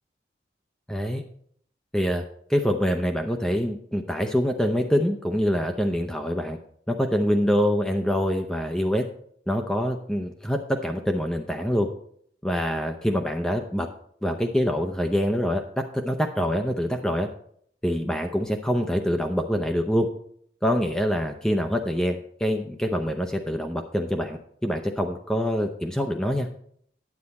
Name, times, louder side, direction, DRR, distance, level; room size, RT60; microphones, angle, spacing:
voice 1, 0.9-1.2 1.9-2.2 2.5-6.6 6.9-9.0 9.5-11.9 12.4-13.9 14.2-15.6 15.9-17.3 17.8-20.1 20.6-26.5, equal, 5° left, 4 dB, 0.6 m, -25 dB
9.8 x 8.2 x 4.2 m, 0.64 s
head